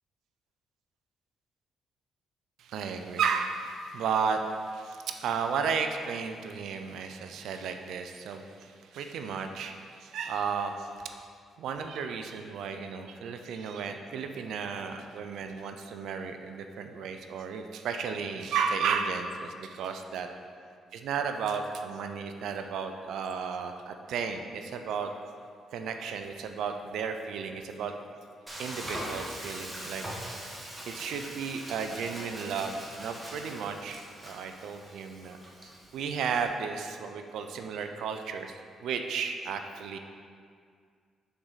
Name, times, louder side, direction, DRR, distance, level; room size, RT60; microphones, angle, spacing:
voice 1, 2.6-11.1 11.6-20.3 20.9-25.1 25.7-27.9 28.6-30.1 30.9-35.4 35.9-38.5 38.8-40.0, right 6 dB, 75° right, 6 dB, 0.4 m, -33 dB
Frying (food), 28.5-36.5, equal, 15° right, 1.3 m, -42 dB
6.3 x 4.6 x 4.0 m, 2.1 s
cardioid pair, 90°, 0 cm